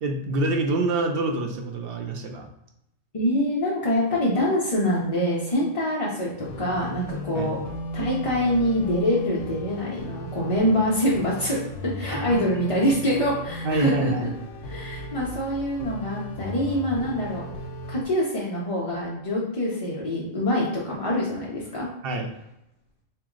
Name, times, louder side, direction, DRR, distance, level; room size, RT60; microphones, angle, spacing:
voice 1, 0.0-2.5 7.3-7.5 12.1-12.5 13.6-14.3 22.0-22.3, right 2 dB, 60° right, 3 dB, 0.6 m, -26 dB
voice 2, 3.1-7.6 7.9-14.3 14.7-17.4 17.9-21.9, equal, 35° left, -5 dB, 0.5 m, -25 dB
sound 1, 6.4-18.0, equal, 75° left, 0.9 m, -36 dB
4.3 x 2.0 x 3.7 m, 0.82 s
omnidirectional pair, 1.3 m